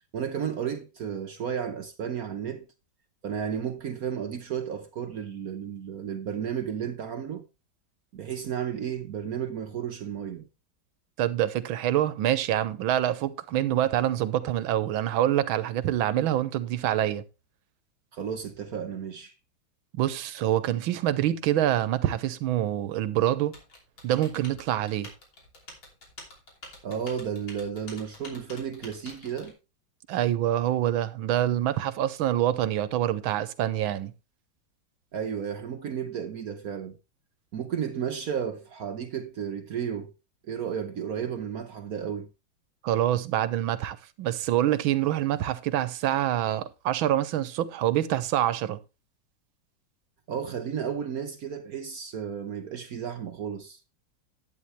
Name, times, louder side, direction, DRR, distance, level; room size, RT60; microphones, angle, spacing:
voice 1, 0.1-2.7 3.2-7.4 8.1-10.5 18.1-19.3 26.8-29.6 35.1-37.0 37.5-40.1 40.5-42.3 50.3-53.8, right 8 dB, 60° right, 1.1 m, -33 dB
voice 2, 11.2-17.2 19.9-23.5 24.0-25.1 30.1-34.1 42.8-48.8, right 12 dB, 85° right, 1.6 m, -26 dB
Typing, 23.5-29.5, left 2 dB, 80° left, 3.9 m, -47 dB
11.0 x 9.0 x 3.2 m
omnidirectional pair, 2.2 m